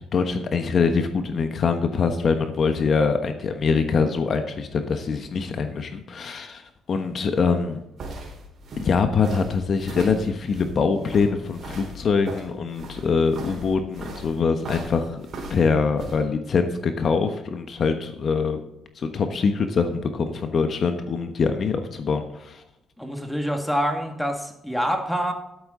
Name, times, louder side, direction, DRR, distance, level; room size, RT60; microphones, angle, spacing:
voice 1, 0.1-7.8 8.8-18.6 19.0-22.6, left 5 dB, 55° left, 7 dB, 1.1 m, -24 dB
sound 1, 7.5-16.2, right 1 dB, 55° right, 4.0 m, -38 dB
voice 2, 23.0-25.3, equal, ahead, 4 dB, 2.0 m, -26 dB
12.5 x 8.4 x 3.8 m, 0.86 s
cardioid pair, 90°, 0 cm